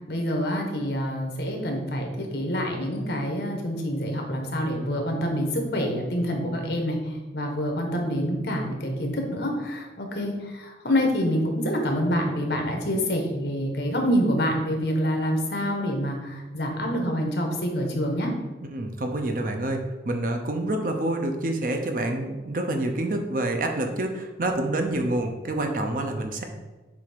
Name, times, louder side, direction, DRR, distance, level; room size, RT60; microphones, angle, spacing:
voice 1, 0.0-18.3, equal, 65° left, 2 dB, 1.2 m, -27 dB
voice 2, 18.6-26.4, right 1 dB, 50° right, 4 dB, 0.7 m, -27 dB
6.9 x 2.8 x 5.0 m, 1.2 s
head